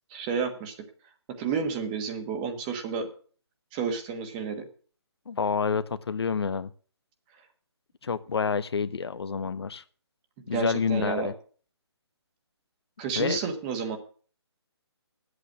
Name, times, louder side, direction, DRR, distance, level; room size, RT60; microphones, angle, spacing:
voice 1, 0.1-0.7 1.4-3.1 3.7-4.7 10.5-11.3 13.0-14.0, right 5 dB, 20° right, 6 dB, 1.3 m, -30 dB
voice 2, 5.3-6.7 8.0-9.8 10.5-11.3 13.2-13.4, left 5 dB, 65° left, 14 dB, 0.8 m, -28 dB
10.5 x 8.2 x 7.3 m, 0.43 s
hypercardioid pair, 160°, 14 cm